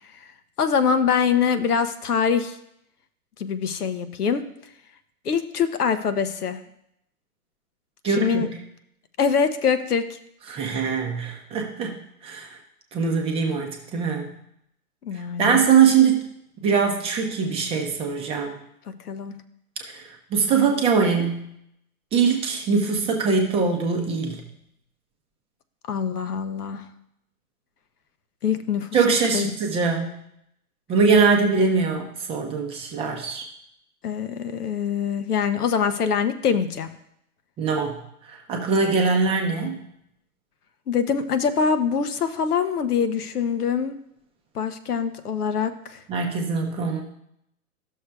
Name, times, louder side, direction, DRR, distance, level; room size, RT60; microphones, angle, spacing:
voice 1, 0.6-2.6 3.4-4.4 5.2-6.6 8.0-8.5 9.2-10.1 15.0-15.6 18.9-19.4 25.9-26.9 28.4-29.5 34.0-36.9 40.9-44.0 44.5-46.0, left 6 dB, 85° left, 10 dB, 0.8 m, -24 dB
voice 2, 8.0-8.4 10.5-12.6 12.9-14.3 15.4-16.3 16.6-18.5 19.8-21.5 22.1-24.4 28.9-30.2 30.9-33.4 37.6-38.0 38.2-39.8 46.1-47.0, right 5 dB, 15° right, 1 dB, 0.6 m, -22 dB
13.0 x 6.4 x 2.2 m, 0.77 s
hypercardioid pair, 130°, 44 cm